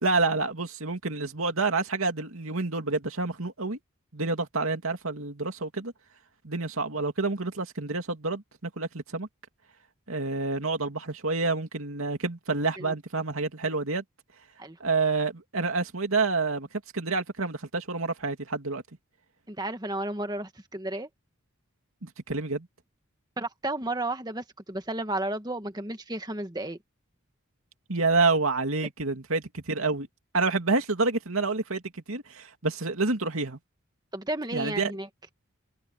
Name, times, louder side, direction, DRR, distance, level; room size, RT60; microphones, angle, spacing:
voice 1, 0.0-3.8 4.1-5.9 6.4-9.3 10.1-14.0 14.8-16.7 16.9-18.8 22.0-22.7 27.9-30.1 30.3-33.6 34.5-34.9, right 3 dB, 80° right, 2.7 m, -28 dB
voice 2, 19.5-21.1 23.4-26.8 34.1-35.1, right 1 dB, 20° right, 1.5 m, -33 dB
head